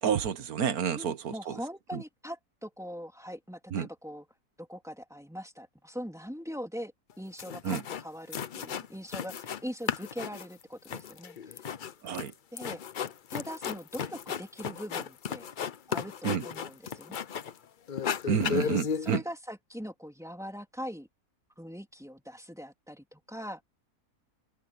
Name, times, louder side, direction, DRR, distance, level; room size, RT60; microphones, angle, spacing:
voice 1, 0.0-1.5 1.9-2.0 3.7-3.9 7.6-7.8 12.0-12.3 16.2-16.4 18.3-19.2, right 7 dB, 70° right, 1.6 m, -29 dB
voice 2, 0.9-4.2 4.6-11.7 12.5-12.8 13.3-15.5 15.9-17.2 18.4-21.1 21.6-23.6, equal, ahead, 3.2 m, -41 dB
sound 1, 7.1-7.2 7.4-8.0 8.3-9.6 9.9-17.6 17.9-19.2, left 7 dB, 50° left, 0.6 m, -35 dB
omnidirectional pair, 1.6 m